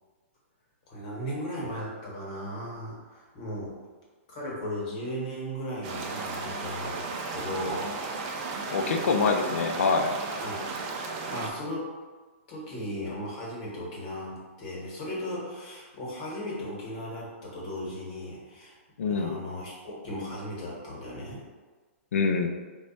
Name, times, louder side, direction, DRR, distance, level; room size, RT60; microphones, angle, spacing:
voice 1, 0.9-3.7 4.3-8.0 10.4-10.6 11.3-11.9 12.5-18.7 19.1-21.4, equal, 35° left, -4 dB, 1.0 m, -36 dB
sound 1, 5.8-11.5, right 3 dB, 30° right, 0.4 m, -34 dB
voice 2, 8.7-10.1 19.0-19.4 22.1-22.5, left 4 dB, 80° left, 5 dB, 0.5 m, -25 dB
3.1 x 2.2 x 4.0 m, 1.4 s
hypercardioid pair, 170°, 7 cm